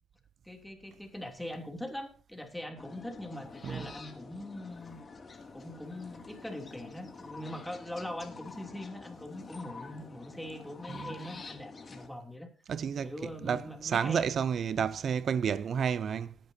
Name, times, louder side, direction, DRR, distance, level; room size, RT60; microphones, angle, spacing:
voice 1, 0.4-5.0 5.5-12.5 13.0-14.3, left 1 dB, 5° left, 2.9 m, -42 dB
sound 1, 2.8-12.1, left 4 dB, 35° left, 2.4 m, -48 dB
voice 2, 10.9-11.3 12.7-16.4, right 7 dB, 55° right, 0.5 m, -31 dB
19.0 x 10.5 x 2.8 m
cardioid pair, 90°, 0 cm